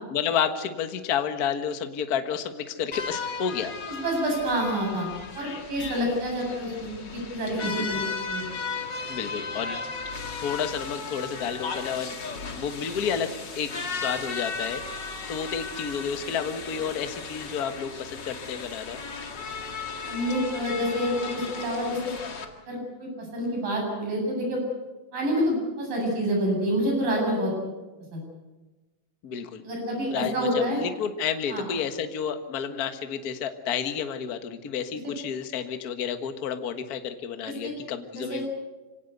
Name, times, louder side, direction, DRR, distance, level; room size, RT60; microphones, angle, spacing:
voice 1, 0.1-3.7 7.6-7.9 9.0-9.8 10.4-12.2 12.5-19.0 29.2-29.6 30.1-38.5, left 7 dB, 55° left, 8 dB, 1.0 m, -31 dB
sound 1, 2.9-22.4, left 4 dB, 40° left, 2.2 m, -36 dB
voice 2, 3.9-5.1 5.3-8.5 20.1-22.1 22.7-24.6 25.1-27.5 28.1-28.2 29.6-30.8 31.5-31.6 37.4-37.7 38.2-38.4, equal, 75° right, 0 dB, 9.9 m, -28 dB
26.0 x 18.0 x 8.1 m, 1.2 s
omnidirectional pair, 3.9 m